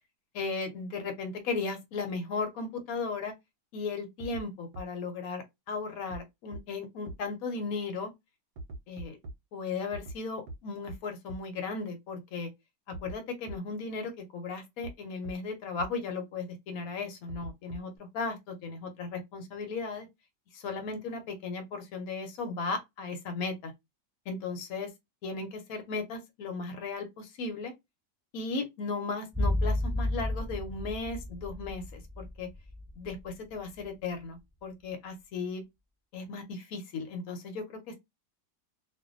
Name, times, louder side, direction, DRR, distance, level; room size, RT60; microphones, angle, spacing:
voice 1, 0.3-3.3 3.7-8.1 8.9-9.2 9.5-12.5 13.0-20.1 20.5-23.7 24.3-24.9 25.2-27.7 28.3-32.5 33.0-35.6 36.1-38.0, left 4 dB, 65° left, 1.1 m, -36 dB
sound 1, 4.2-4.4 4.7-4.8 6.1-6.2 6.5-6.6 7.1-7.2 8.6-9.3 9.9-10.2 10.5-10.6 10.9-11.0 11.3-11.4 12.9-13.2 13.5-13.6 14.8-14.9 15.2-15.3 15.8-15.9 17.3-18.0, right 2 dB, 70° right, 1.1 m, -41 dB
sound 2, 29.3-33.6 33.8-33.9, left 1 dB, 5° right, 1.3 m, -32 dB
2.6 x 2.5 x 2.4 m
omnidirectional pair, 1.9 m